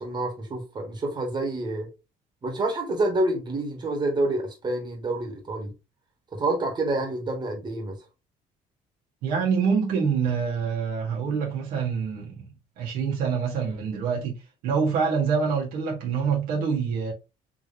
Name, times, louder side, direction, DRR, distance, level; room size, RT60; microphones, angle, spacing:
voice 1, 0.0-1.9 2.4-5.7 6.3-7.9, right 2 dB, 30° right, 1.4 m, -28 dB
voice 2, 9.2-12.4 12.8-14.4 14.6-17.1, right 6 dB, 90° right, 1.4 m, -26 dB
3.7 x 2.9 x 2.6 m
cardioid pair, 115°, 15 cm